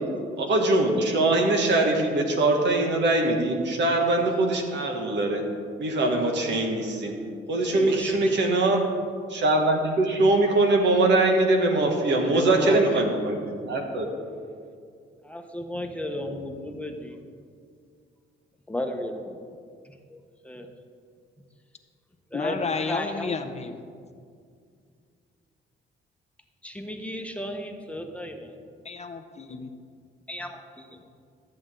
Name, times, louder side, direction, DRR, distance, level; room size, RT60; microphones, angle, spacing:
voice 1, 0.4-5.4 5.8-7.1 7.5-8.9 9.3-14.1, right 2 dB, 65° right, 2 dB, 1.6 m, -22 dB
voice 2, 7.7-8.3 12.3-13.1 15.2-17.2 18.7-19.3 20.1-20.7 22.3-23.4 24.0-24.1 26.6-28.6 30.3-31.0, left 1 dB, 5° left, 3 dB, 1.0 m, -34 dB
voice 3, 22.3-23.8 28.8-29.7, left 4 dB, 35° left, 7 dB, 0.7 m, -31 dB
13.5 x 7.8 x 3.8 m, 2.2 s
cardioid pair, 90°, 20 cm